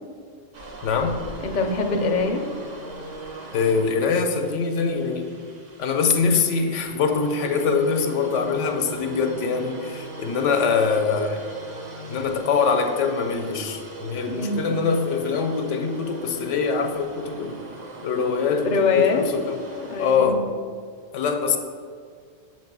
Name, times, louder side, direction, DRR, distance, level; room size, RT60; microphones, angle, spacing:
sound 1, 0.5-20.2, right 2 dB, 45° right, 0.7 m, -40 dB
voice 1, 0.8-1.2 3.5-5.3 5.8-11.4 12.1-17.6 18.0-19.6 20.0-20.4 21.1-21.6, left 5 dB, 90° left, 5 dB, 1.0 m, -23 dB
voice 2, 1.4-2.4 14.3-14.8 18.6-19.3 19.7-20.4, left 4 dB, 50° left, 4 dB, 0.6 m, -23 dB
7.1 x 3.1 x 5.9 m, 2.1 s
omnidirectional pair, 1.2 m